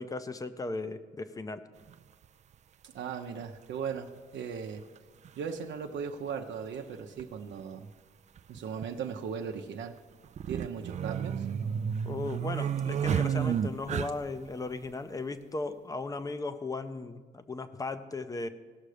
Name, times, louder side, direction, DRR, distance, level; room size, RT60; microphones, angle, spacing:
voice 1, 0.0-1.7 12.0-18.5, left 3 dB, 20° left, 11 dB, 0.6 m, -36 dB
sound 1, 1.9-2.0 3.4-3.5 5.0-5.1 5.2-5.3 7.2-7.3 7.6-7.7 8.4-8.8 10.2-14.4, right 8 dB, 35° right, 0.4 m, -31 dB
voice 2, 2.8-4.8 5.4-7.9 8.5-10.0 10.5-11.5, right 6 dB, 70° right, 4 dB, 0.8 m, -38 dB
17.5 x 6.6 x 5.0 m, 1.5 s
cardioid pair, 135°, 19 cm